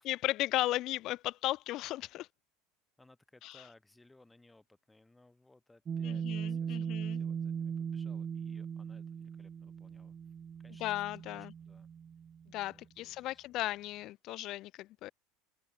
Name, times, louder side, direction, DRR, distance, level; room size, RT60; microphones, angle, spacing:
voice 1, 0.0-2.3 3.4-3.6 6.0-7.2 10.8-11.5 12.5-15.1, left 16 dB, 45° left, 0.4 m, -36 dB
voice 2, 3.0-10.2 10.6-11.0 11.3-11.9 12.7-13.6, left 2 dB, 5° left, 4.4 m, -63 dB
sound 1, 5.9-12.6, right 7 dB, 25° right, 1.2 m, -39 dB
open air
supercardioid pair, 150°, 0 cm